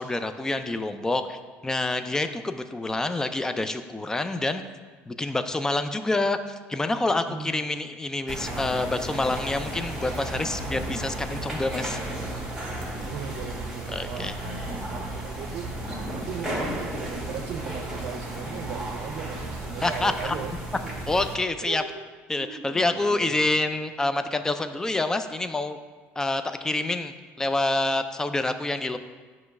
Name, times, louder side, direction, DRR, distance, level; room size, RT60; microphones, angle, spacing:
voice 1, 0.0-4.6 5.1-12.0 13.9-14.4 19.8-20.4 21.1-21.8 22.3-25.8 26.2-29.0, left 2 dB, 10° left, 9 dB, 0.4 m, -27 dB
voice 2, 7.3-7.7 13.0-15.7 16.1-20.5 20.8-20.9 21.6-21.9 22.4-23.5, right 7 dB, 65° right, 3 dB, 0.6 m, -38 dB
sound 1, 8.3-21.3, right 1 dB, 5° right, 1.6 m, -34 dB
7.4 x 3.1 x 5.8 m, 1.4 s
cardioid pair, 110°, 5 cm